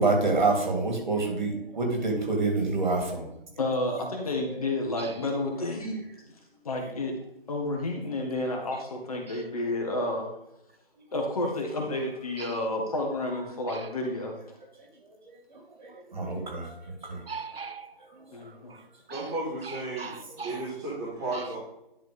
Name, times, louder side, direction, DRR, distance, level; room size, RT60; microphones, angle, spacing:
voice 1, 0.0-3.2 15.8-16.8 17.1-17.2, right 3 dB, 50° right, 2.9 m, -26 dB
voice 2, 3.6-6.0 6.6-7.2 7.5-10.3 11.1-14.4 18.3-18.8, left 2 dB, 40° left, 1.9 m, -30 dB
voice 3, 17.3-18.0 18.3-19.3 19.6-20.7 21.3-21.5, right 4 dB, 75° right, 0.7 m, -41 dB
voice 4, 19.1-21.6, right 2 dB, 5° right, 0.7 m, -34 dB
11.0 x 3.9 x 5.0 m
figure-of-eight pair, 155°, 30 cm